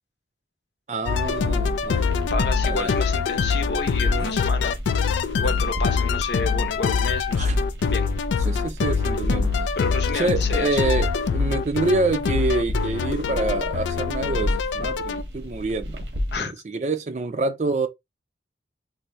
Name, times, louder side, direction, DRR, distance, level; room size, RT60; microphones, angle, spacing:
voice 1, 0.9-2.3 2.6-2.9 4.2-4.3 7.4-7.6 8.4-9.5 10.1-16.0 16.4-17.9, right 3 dB, 40° right, 0.4 m, -26 dB
sound 1, 1.1-15.2, left 5 dB, 90° left, 0.3 m, -24 dB
sound 2, 1.2-16.4, equal, 80° right, 1.0 m, -32 dB
voice 2, 2.3-4.8 5.4-7.6 7.9-8.1 9.8-10.9 14.8-14.9 16.3-16.5, left 4 dB, 70° left, 0.8 m, -30 dB
2.7 x 2.6 x 3.1 m
head